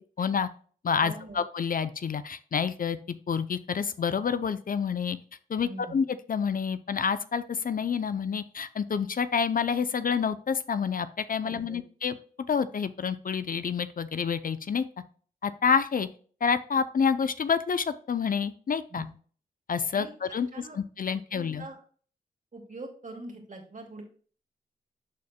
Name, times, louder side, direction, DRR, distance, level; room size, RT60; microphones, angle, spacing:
voice 1, 0.2-0.5 0.8-3.0 3.3-5.2 5.5-12.1 12.5-14.8 15.4-16.1 16.4-19.1 19.7-20.5 20.7-21.7, left 6 dB, 50° left, 13 dB, 0.6 m, -28 dB
voice 2, 1.0-1.4 5.6-6.0 11.4-11.8 18.9-19.1 19.9-20.8 21.3-21.8 22.5-24.0, right 2 dB, 45° right, 2 dB, 2.4 m, -43 dB
11.5 x 4.2 x 2.2 m, 0.43 s
cardioid pair, 45°, 18 cm